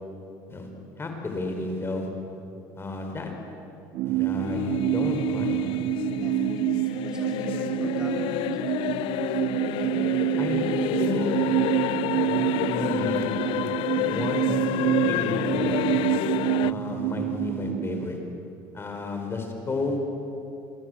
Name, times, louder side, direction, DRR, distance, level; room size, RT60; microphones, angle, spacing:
voice 1, 1.0-2.1 2.7-3.3 4.0-5.7 10.4-10.6 11.0-11.5 12.2-13.3 14.1-15.8 16.6-18.2 18.7-20.0, left 2 dB, 25° left, 3 dB, 5.1 m, -32 dB
sound 1, 3.9-18.1, right 19 dB, 65° right, 0.5 m, -27 dB
sound 2, 4.3-16.7, left 16 dB, 70° left, 0.5 m, -29 dB
voice 2, 6.2-8.6, equal, 10° right, 0 dB, 7.7 m, -44 dB
27.0 x 22.0 x 8.1 m, 2.9 s
supercardioid pair, 100°, 9 cm